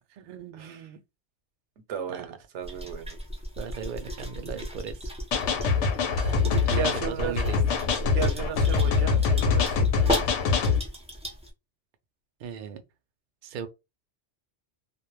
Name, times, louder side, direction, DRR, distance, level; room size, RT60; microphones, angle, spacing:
voice 1, 0.1-1.0 2.1-2.3 2.7-3.0 3.6-5.1 6.3-7.8 12.4-12.8 13.4-13.7, right 7 dB, 60° right, 0.6 m, -38 dB
voice 2, 1.9-3.2 6.2-6.4 6.7-7.4 8.1-10.1, right 7 dB, 85° right, 1.0 m, -34 dB
sound 1, 2.6-11.5, equal, 10° right, 0.3 m, -36 dB
sound 2, 5.3-10.8, left 5 dB, 85° left, 0.9 m, -24 dB
2.3 x 2.1 x 2.9 m
omnidirectional pair, 1.2 m